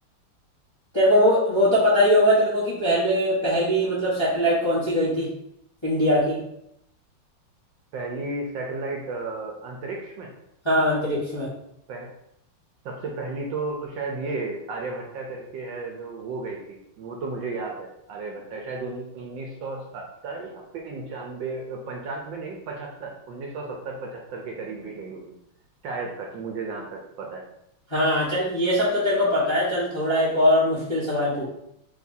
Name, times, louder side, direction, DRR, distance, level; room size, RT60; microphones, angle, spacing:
voice 1, 0.9-5.3 5.8-6.4 10.6-11.5 27.9-31.4, equal, 20° left, -8 dB, 0.9 m, -21 dB
voice 2, 7.9-10.3 11.9-12.1 12.8-25.3 25.8-27.5, right 3 dB, 70° right, 0 dB, 1.3 m, -34 dB
4.9 x 3.4 x 2.6 m, 0.77 s
omnidirectional pair, 2.3 m